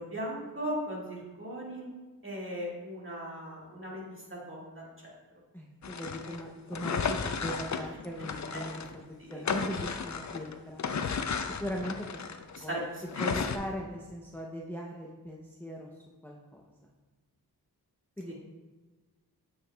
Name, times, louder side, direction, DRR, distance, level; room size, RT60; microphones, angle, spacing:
voice 1, 0.0-1.9 2.2-4.0 4.3-5.1 8.5-8.6 12.5-12.8 18.3-18.4, right 1 dB, 30° right, -4 dB, 1.8 m, -38 dB
voice 2, 5.5-9.0 9.3-10.8 11.6-12.2 12.6-12.8 13.2-16.9 18.2-18.3, equal, 5° left, -2 dB, 0.6 m, -39 dB
sound 1, 5.8-8.9 9.3-12.6 13.1-13.6, left 5 dB, 50° left, 0.5 m, -34 dB
8.5 x 5.0 x 2.2 m, 1.3 s
wide cardioid pair, 45°, 38 cm